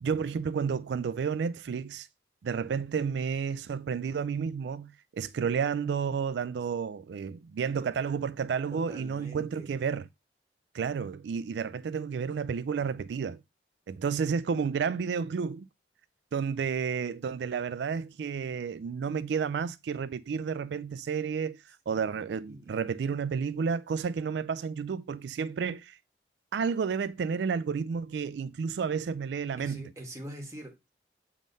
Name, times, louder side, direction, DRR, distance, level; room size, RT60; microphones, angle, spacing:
voice 1, 0.0-2.1 2.4-10.1 10.7-13.4 13.9-15.7 16.3-26.0 26.5-29.8, right 6 dB, 75° right, 0.3 m, -31 dB
voice 2, 8.7-9.7 21.9-22.7 29.6-30.9, equal, 15° right, 1.7 m, -45 dB
7.4 x 3.7 x 5.2 m
head